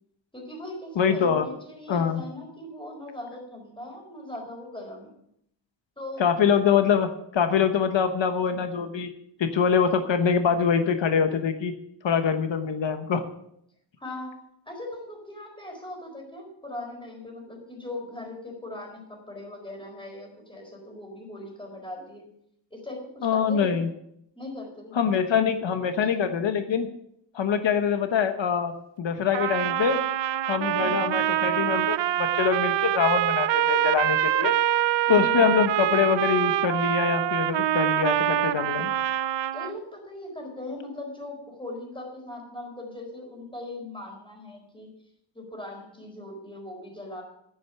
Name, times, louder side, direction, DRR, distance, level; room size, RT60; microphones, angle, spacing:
voice 1, 0.3-5.1 6.0-6.3 14.0-14.3 14.7-22.3 22.7-23.9 24.4-25.0 26.0-26.1 30.8-31.0 35.1-35.6 39.5-44.9 45.3-47.2, left 2 dB, 10° left, 1 dB, 4.3 m, -39 dB
voice 2, 1.0-1.5 1.9-2.2 6.2-7.1 7.3-9.1 9.4-11.7 12.0-13.2 23.2-23.9 24.9-26.9 27.3-28.7 29.0-30.0 30.5-34.5 35.1-38.9, left 7 dB, 90° left, 8 dB, 1.1 m, -24 dB
Trumpet, 29.3-39.7, right 12 dB, 75° right, 0.5 m, -25 dB
10.0 x 10.0 x 5.7 m, 0.73 s
wide cardioid pair, 125°, 44 cm